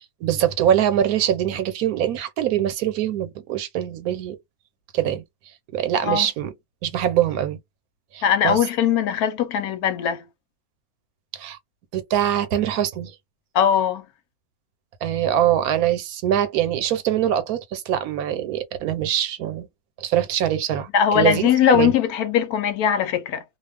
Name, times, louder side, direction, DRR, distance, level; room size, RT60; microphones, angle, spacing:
voice 1, 0.0-4.4 4.9-5.2 5.7-6.5 6.8-7.6 8.1-8.6 11.3-11.6 11.9-13.1 15.0-19.7 20.0-20.9 21.1-21.9, right 10 dB, 80° right, 1.1 m, -23 dB
voice 2, 8.2-10.2 13.5-14.1 20.9-23.4, left 8 dB, 80° left, 1.1 m, -20 dB
2.5 x 2.3 x 3.3 m
omnidirectional pair, 1.6 m